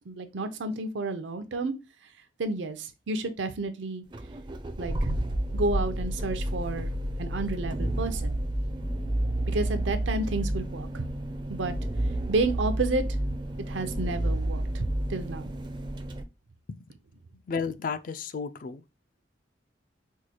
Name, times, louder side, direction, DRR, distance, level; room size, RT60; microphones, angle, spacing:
voice 1, 0.1-1.7 2.4-4.0 4.8-5.1 5.5-6.9 7.2-8.4 9.5-11.0 11.5-11.7 12.3-13.0 13.7-14.8 15.1-15.5, right 2 dB, 85° right, 0.6 m, -30 dB
sound 1, 4.1-16.2, right 1 dB, 25° right, 0.4 m, -30 dB
voice 2, 17.5-18.8, left 5 dB, 45° left, 0.3 m, -33 dB
4.5 x 2.2 x 2.8 m
head